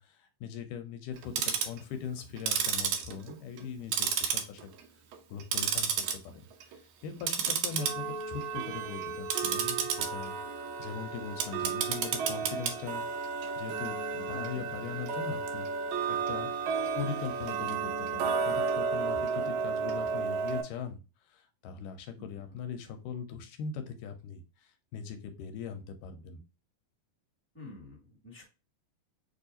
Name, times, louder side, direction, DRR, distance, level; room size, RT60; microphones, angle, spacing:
voice 1, 0.0-4.6 5.3-10.4 10.8-13.1 13.6-15.7 16.1-16.5 17.0-21.0 21.3-26.4, left 6 dB, 85° left, 7 dB, 2.2 m, -41 dB
Tick-tock, 1.2-1.8 2.4-3.7 3.9-4.8 5.1-6.1 6.5-6.8 7.2-20.6, right 6 dB, 75° right, 1.8 m, -32 dB
voice 2, 14.3-14.6 22.2-22.3 27.5-28.4, left 2 dB, 5° left, -3 dB, 1.3 m, -48 dB
6.7 x 2.8 x 2.6 m, 0.29 s
omnidirectional pair, 3.9 m